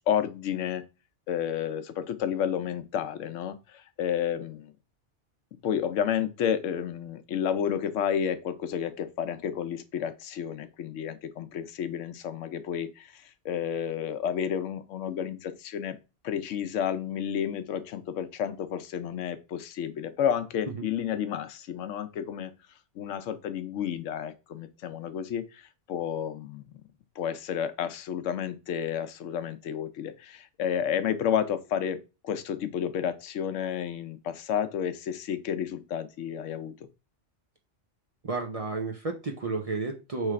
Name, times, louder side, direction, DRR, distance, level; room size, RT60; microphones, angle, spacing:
voice 1, 0.1-0.8 1.3-4.7 5.6-16.0 16.2-22.5 23.0-26.7 27.2-32.0 32.2-36.7, left 9 dB, 85° left, 0.9 m, -31 dB
voice 2, 38.2-40.3, right 3 dB, 40° right, 0.5 m, -31 dB
3.3 x 3.2 x 4.8 m
omnidirectional pair, 1.2 m